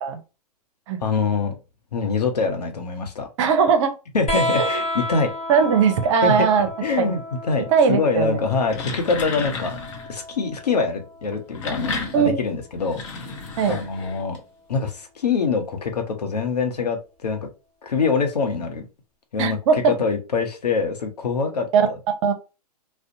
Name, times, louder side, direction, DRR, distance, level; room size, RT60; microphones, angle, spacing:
voice 1, 1.0-1.6 1.9-3.3 4.1-5.3 6.2-6.5 6.8-9.8 10.1-13.0 13.7-14.4 14.7-17.5 17.8-18.9 19.3-22.0, left 4 dB, 80° left, 4 dB, 0.8 m, -24 dB
voice 2, 3.4-3.9 4.6-4.7 5.5-6.7 7.0-7.1 7.7-8.4 12.1-12.4 13.6-13.8 19.4-19.9 21.7-21.8 22.2-22.3, right 6 dB, 50° right, 7 dB, 0.6 m, -19 dB
sound 1, 4.3-11.3 12.7-13.5 14.8-14.9, left 1 dB, 30° left, 1.3 m, -31 dB
sound 2, 8.4-10.1 11.3-14.4, left 4 dB, 50° left, 0.7 m, -32 dB
2.5 x 2.1 x 2.6 m, 0.30 s
hypercardioid pair, 120°, 20 cm